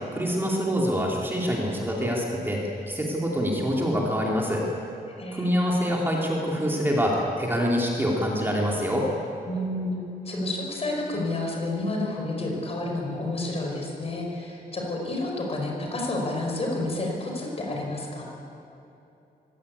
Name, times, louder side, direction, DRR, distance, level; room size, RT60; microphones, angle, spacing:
voice 1, 0.1-4.6 5.3-9.1, equal, 15° right, -3 dB, 2.8 m, -25 dB
voice 2, 5.1-5.7 9.5-10.0 10.3-18.2, left 2 dB, 35° left, 0 dB, 5.2 m, -30 dB
24.5 x 16.5 x 8.5 m, 2.9 s
wide cardioid pair, 170°, 17 cm